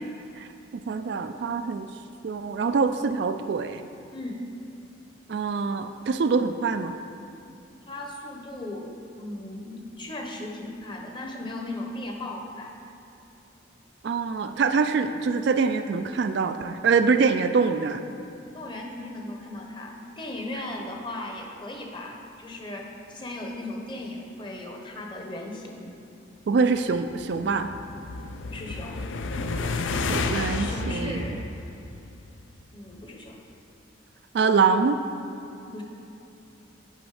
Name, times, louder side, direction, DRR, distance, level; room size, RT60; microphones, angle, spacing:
voice 1, 0.9-1.9 2.2-3.8 5.3-6.9 14.0-18.0 26.5-27.7 30.1-31.3 34.3-35.0, right 5 dB, 55° right, 8 dB, 0.3 m, -24 dB
voice 2, 4.1-4.4 7.9-12.8 18.5-25.9 28.4-29.0 30.6-31.4 32.7-33.4 35.7-35.8, left 1 dB, 25° left, 1 dB, 0.8 m, -37 dB
sound 1, 26.9-32.4, left 3 dB, 75° left, 0.5 m, -31 dB
9.1 x 5.2 x 4.8 m, 2.8 s
head